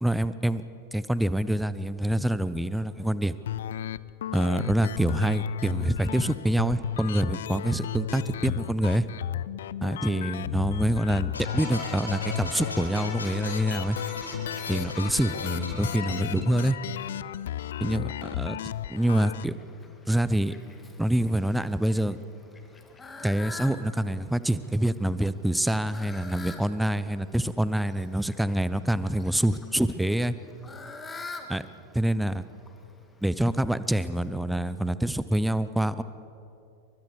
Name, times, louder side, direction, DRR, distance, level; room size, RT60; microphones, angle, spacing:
voice 1, 0.0-0.6 0.9-3.4 4.3-9.1 9.8-14.0 14.7-16.8 17.8-18.6 18.9-19.5 20.1-20.5 21.0-22.2 23.2-30.4 31.5-31.6 31.9-32.5 33.2-36.0, right 1 dB, 5° right, 15 dB, 0.8 m, -26 dB
sound 1, 3.5-19.4, left 11 dB, 60° left, 0.5 m, -34 dB
sound 2, 11.3-17.1, left 2 dB, 75° left, 5.6 m, -39 dB
Fowl, 19.0-34.3, left 3 dB, 15° left, 2.1 m, -47 dB
29.5 x 24.0 x 4.8 m, 2.7 s
figure-of-eight pair, 90°, 0 cm